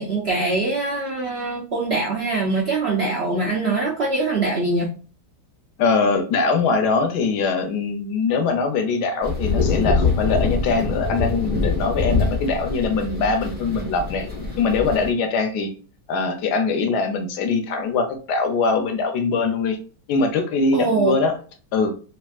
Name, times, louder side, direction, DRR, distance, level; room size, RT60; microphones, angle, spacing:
voice 1, 0.0-4.9 20.7-21.2, right 3 dB, 70° right, -3 dB, 0.6 m, -23 dB
voice 2, 5.8-14.3 14.6-15.7 16.1-19.8 20.1-21.3 21.7-21.9, left 4 dB, 75° left, 6 dB, 1.2 m, -22 dB
sound 1, 9.2-15.1, left 4 dB, 10° right, 0.4 m, -24 dB
3.3 x 2.4 x 2.3 m, 0.39 s
omnidirectional pair, 1.8 m